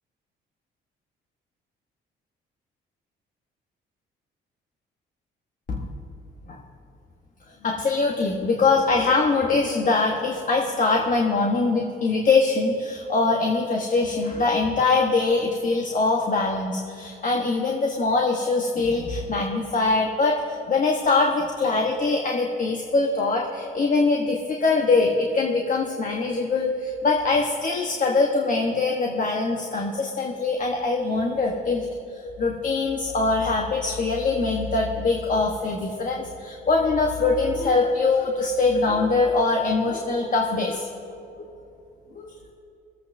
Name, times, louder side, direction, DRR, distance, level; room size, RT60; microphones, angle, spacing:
voice 1, 7.6-40.9 41.4-41.5 42.1-42.4, left 3 dB, 40° left, 0 dB, 1.2 m, -23 dB
25.0 x 8.3 x 2.7 m, 2.6 s
cardioid pair, 90°, 20 cm